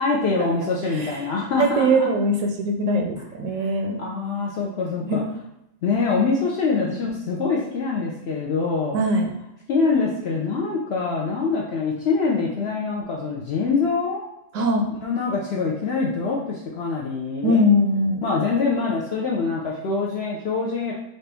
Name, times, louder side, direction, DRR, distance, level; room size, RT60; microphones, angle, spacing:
voice 1, 0.0-2.1 3.6-3.7 4.0-5.2 5.8-9.0 9.7-14.3 15.0-17.6 18.2-20.9, left 4 dB, 65° left, -3 dB, 0.6 m, -24 dB
voice 2, 1.6-4.0 5.0-5.2 8.9-9.3 14.5-14.9 17.4-18.2, equal, 70° right, 2 dB, 0.8 m, -21 dB
4.2 x 2.6 x 3.3 m, 0.83 s
omnidirectional pair, 1.6 m